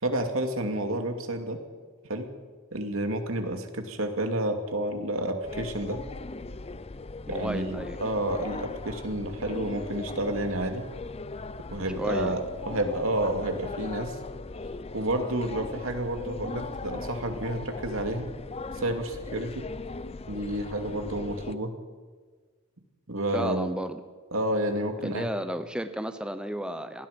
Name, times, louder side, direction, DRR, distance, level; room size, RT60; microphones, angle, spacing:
voice 1, 0.0-1.6 2.0-2.3 2.7-6.0 7.3-10.9 11.7-14.2 14.9-18.3 18.7-19.7 20.3-21.7 23.1-23.8 24.3-25.3, right 1 dB, 75° right, 5 dB, 2.7 m, -30 dB
sound 1, 5.4-21.6, left 3 dB, 30° left, 0.6 m, -39 dB
voice 2, 7.3-8.0 12.0-12.3 23.3-24.0 25.0-27.1, equal, 5° right, 9 dB, 0.8 m, -33 dB
27.0 x 20.0 x 5.3 m, 1.5 s
head